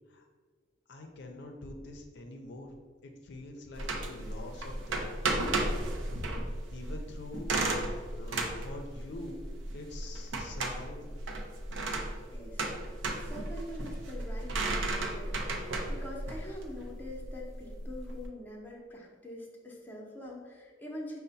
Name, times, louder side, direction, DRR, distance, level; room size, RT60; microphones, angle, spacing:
voice 1, 0.9-5.1 6.4-7.5 8.1-9.4 9.7-11.1, left 1 dB, 60° left, 3 dB, 0.4 m, -45 dB
sound 1, 3.8-18.3, right 2 dB, 80° right, 0.5 m, -34 dB
voice 2, 12.3-12.6 13.2-21.2, left 1 dB, 10° left, -2 dB, 0.6 m, -44 dB
5.3 x 2.1 x 3.9 m, 1.5 s
head